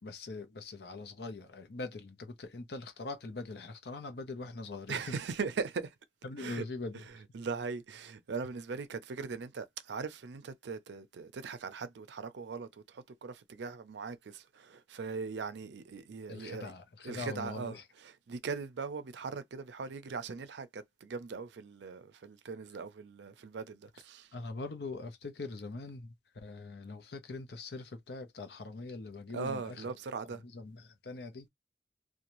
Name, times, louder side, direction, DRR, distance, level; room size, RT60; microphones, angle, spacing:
voice 1, 0.0-5.1 6.2-7.2 16.3-17.8 24.3-29.9 30.4-31.5, left 3 dB, 65° left, 0.6 m, -42 dB
voice 2, 4.9-5.9 6.4-6.6 7.3-16.7 17.0-17.8 18.0-24.3 29.3-30.4, right 5 dB, 75° right, 0.4 m, -40 dB
2.6 x 2.2 x 2.9 m
head